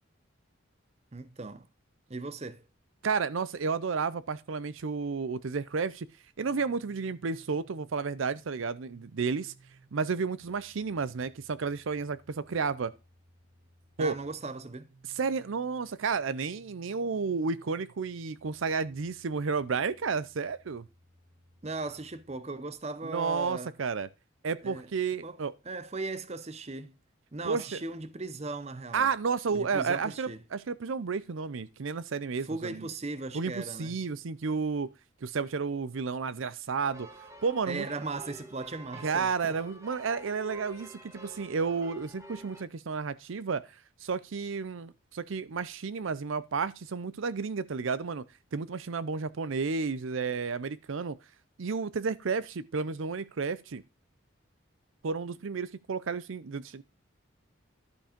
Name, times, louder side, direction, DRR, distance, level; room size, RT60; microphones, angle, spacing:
voice 1, 1.1-1.7 2.1-2.6 14.0-14.9 21.6-23.7 24.6-24.9 25.2-25.4 25.6-26.9 27.3-29.1 29.5-30.4 32.4-34.0 37.7-39.6, right 3 dB, 30° right, 0.7 m, -38 dB
voice 2, 3.0-6.1 6.4-9.5 9.9-12.9 14.0-14.1 15.1-20.9 23.0-24.1 24.4-25.5 27.4-27.7 28.9-32.9 33.3-34.9 35.2-37.1 37.4-37.9 39.0-48.3 48.5-51.2 51.6-53.8 55.0-56.8, right 5 dB, 75° right, 0.5 m, -32 dB
sound 1, 6.4-22.4, right 2 dB, 55° right, 1.9 m, -62 dB
sound 2, 36.8-42.6, right 1 dB, 15° right, 1.2 m, -49 dB
11.5 x 5.3 x 5.1 m
head